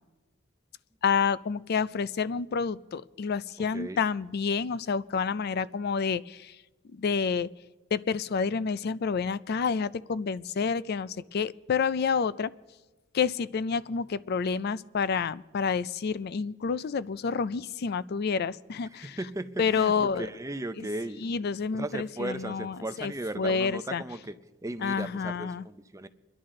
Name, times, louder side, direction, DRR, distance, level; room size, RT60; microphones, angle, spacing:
voice 1, 1.0-6.6 6.8-7.5 7.9-12.5 13.1-19.2 19.6-20.3 20.8-20.9 21.2-24.0 24.8-25.6, left 5 dB, 55° left, 0.4 m, -29 dB
voice 2, 18.9-21.3 21.7-24.4 24.6-26.1, right 1 dB, 15° right, 0.6 m, -36 dB
26.5 x 11.5 x 3.8 m
head